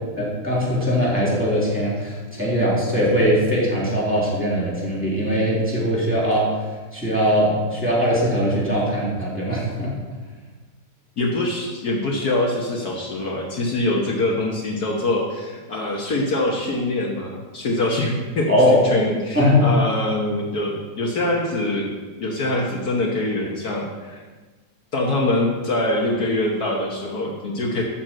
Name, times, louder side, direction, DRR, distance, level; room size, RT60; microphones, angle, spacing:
voice 1, 0.2-6.5 6.9-9.9 18.5-18.8 19.3-19.6, equal, 5° right, -6 dB, 3.1 m, -20 dB
voice 2, 11.2-24.2 24.9-27.8, left 2 dB, 60° left, -1 dB, 1.7 m, -24 dB
12.5 x 4.4 x 7.6 m, 1.3 s
omnidirectional pair, 1.9 m